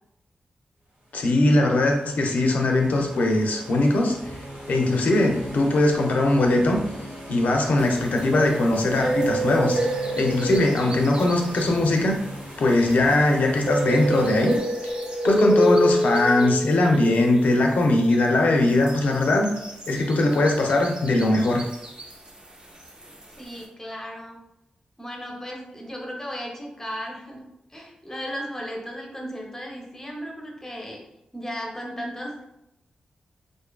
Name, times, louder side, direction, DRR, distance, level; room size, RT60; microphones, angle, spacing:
voice 1, 1.1-4.2 4.7-6.8 7.3-9.8 10.2-12.2 12.6-14.5 15.2-19.5 19.9-21.6, left 2 dB, 75° left, 2 dB, 0.4 m, -20 dB
sound 1, 1.1-14.6, right 1 dB, 90° right, 0.9 m, -39 dB
sound 2, 7.8-13.1 13.5-17.8 18.1-18.2 18.6-22.3 22.8-23.2, right 1 dB, 35° right, 0.5 m, -27 dB
voice 2, 23.4-24.4 25.0-31.0 31.3-32.4, equal, 15° left, 0 dB, 0.7 m, -35 dB
2.5 x 2.3 x 2.2 m, 0.85 s
cardioid pair, 70°, 3 cm